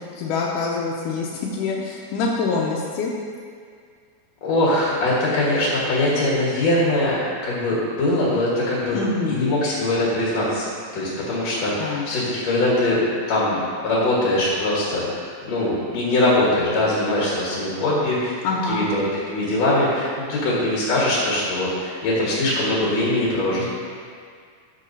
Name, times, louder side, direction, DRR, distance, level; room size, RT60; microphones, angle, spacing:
voice 1, 0.0-3.1 8.9-9.5 11.8-12.1 18.4-18.9, left 4 dB, 85° left, -3 dB, 2.2 m, -25 dB
voice 2, 4.4-9.0 9.3-10.7 10.9-13.0 13.3-18.4 18.7-23.6, left 1 dB, 60° left, -6 dB, 2.6 m, -22 dB
14.0 x 7.4 x 2.7 m, 2.1 s
omnidirectional pair, 3.7 m